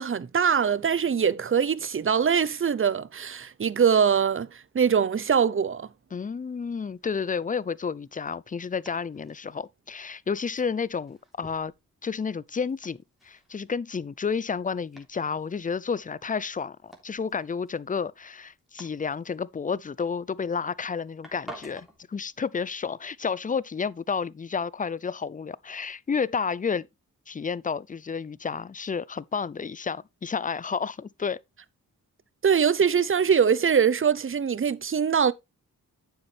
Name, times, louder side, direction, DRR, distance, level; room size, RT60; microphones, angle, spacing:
voice 1, 0.0-5.9 32.4-35.3, right 7 dB, 35° right, 0.6 m, -23 dB
voice 2, 6.1-11.7 12.0-26.9 27.3-31.4, left 5 dB, 25° left, 0.4 m, -31 dB
Domestic sounds home sounds, 6.4-22.0, right 1 dB, ahead, 3.4 m, -53 dB
9.5 x 7.0 x 3.3 m
cardioid pair, 50°, 35 cm